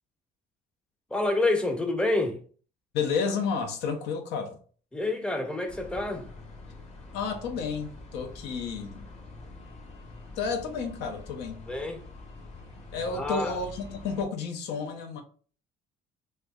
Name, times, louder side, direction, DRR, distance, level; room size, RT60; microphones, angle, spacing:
voice 1, 1.1-2.4 4.9-6.3 11.7-12.0 13.1-13.6, left 2 dB, 5° left, 0.5 m, -28 dB
voice 2, 2.9-4.6 7.1-9.1 10.4-11.6 12.9-15.2, left 5 dB, 80° left, 0.6 m, -31 dB
sound 1, 5.7-14.3, left 3 dB, 40° left, 1.0 m, -46 dB
4.3 x 2.4 x 2.3 m
cardioid pair, 110°, 17 cm